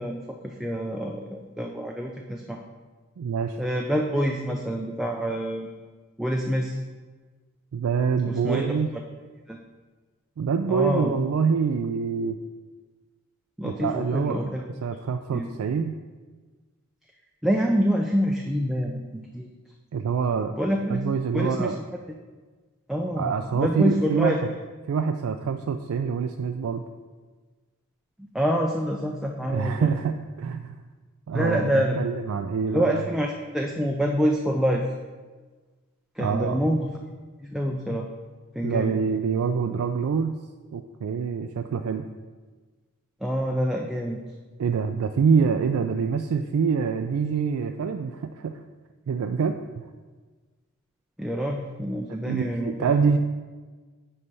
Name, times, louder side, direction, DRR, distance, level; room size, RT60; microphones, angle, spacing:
voice 1, 0.0-2.6 3.6-5.7 6.2-6.8 8.3-8.7 9.5-9.6 10.7-11.1 13.6-14.6 15.3-15.5 17.4-19.5 20.6-21.0 21.3-21.7 22.9-24.4 28.3-29.9 31.3-32.0 32.7-34.8 36.2-37.1 37.4-38.1 38.5-38.9 43.2-44.2 51.2-52.9, equal, ahead, 0 dB, 0.4 m, -26 dB
voice 2, 3.2-3.6 7.7-8.9 10.4-12.4 13.6-14.4 14.8-15.9 19.9-20.6 20.9-21.8 23.2-24.5 24.9-26.8 29.5-30.8 31.3-33.0 36.2-36.6 38.6-40.3 40.7-42.1 44.6-48.5 49.1-49.8 52.3-53.2, right 6 dB, 80° right, 6 dB, 0.3 m, -25 dB
9.7 x 3.2 x 5.3 m, 1.4 s
head